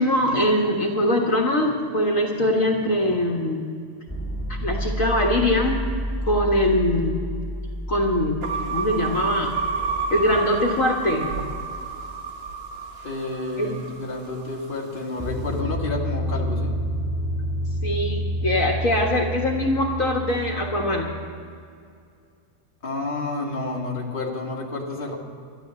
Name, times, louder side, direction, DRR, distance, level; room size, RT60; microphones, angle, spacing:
voice 1, 0.0-3.6 4.5-5.8 6.2-7.2 7.9-8.4 8.7-9.5 10.1-11.5 13.6-13.9 17.8-21.1, left 1 dB, 65° left, 0 dB, 1.9 m, -22 dB
sound 1, 4.1-11.9 15.2-21.3, equal, 10° left, 1.4 m, -30 dB
sound 2, 8.4-14.8, right 5 dB, 45° right, 1.4 m, -30 dB
voice 2, 13.0-16.7 22.8-25.2, left 2 dB, 35° left, -1 dB, 1.9 m, -30 dB
13.0 x 11.5 x 7.5 m, 2.3 s
omnidirectional pair, 1.5 m